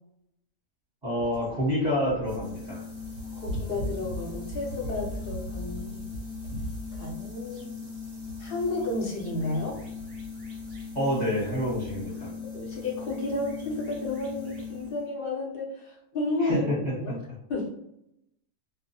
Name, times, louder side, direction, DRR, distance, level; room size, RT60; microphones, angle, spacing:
voice 1, 1.0-2.8 10.9-12.3 16.4-17.1, equal, 25° right, -7 dB, 0.8 m, -28 dB
sound 1, 1.2-14.9, equal, 55° right, 0.7 m, -41 dB
sound 2, 2.2-15.1, left 5 dB, 5° left, 1.0 m, -40 dB
voice 2, 3.3-6.1 7.0-7.8 8.4-9.8 12.2-17.2 17.5-17.7, left 2 dB, 55° left, -2 dB, 0.7 m, -32 dB
2.3 x 2.1 x 2.7 m, 0.82 s
omnidirectional pair, 1.5 m